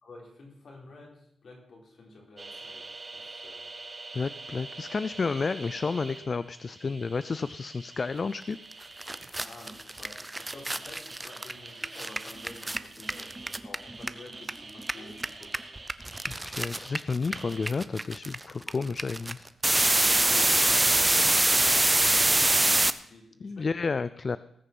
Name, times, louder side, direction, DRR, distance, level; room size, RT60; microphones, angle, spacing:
voice 1, 0.0-3.7 9.4-15.7 20.0-23.9, left 2 dB, 60° left, -1 dB, 4.1 m, -49 dB
sound 1, 2.4-16.9 17.3-17.7, right 3 dB, 35° right, 2.4 m, -46 dB
voice 2, 4.1-8.6 16.3-19.5 23.4-24.4, left 4 dB, 40° left, 15 dB, 0.4 m, -31 dB
sound 2, 8.7-8.8 9.0-14.5 14.8-22.9, right 2 dB, 15° right, 0.6 m, -25 dB
19.0 x 6.6 x 6.0 m, 0.73 s
cardioid pair, 85°, 0 cm